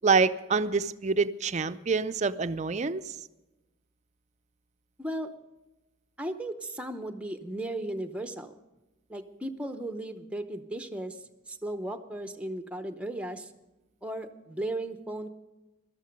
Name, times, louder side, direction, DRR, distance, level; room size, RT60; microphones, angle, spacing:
voice 1, 0.0-3.1, right 4 dB, 35° right, 12 dB, 0.5 m, -26 dB
voice 2, 5.0-5.3 6.2-8.6 9.1-11.2 11.5-13.5 14.0-15.3, right 1 dB, 5° right, 8 dB, 0.7 m, -36 dB
17.0 x 12.5 x 5.2 m, 1.0 s
head